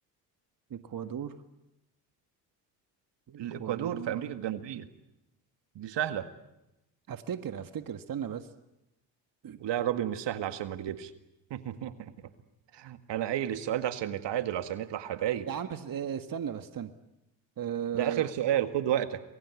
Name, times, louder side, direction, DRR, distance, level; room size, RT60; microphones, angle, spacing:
voice 1, 0.7-1.4 3.3-4.1 7.1-8.5 9.4-9.6 15.5-16.9 17.6-18.2, right 8 dB, 45° right, 9 dB, 1.7 m, -36 dB
voice 2, 3.4-4.9 5.8-6.3 9.6-11.1 11.5-12.1 12.7-15.5 17.9-19.2, right 11 dB, 60° right, 9 dB, 2.0 m, -31 dB
28.0 x 22.0 x 8.4 m, 0.91 s
hypercardioid pair, 60°, 48 cm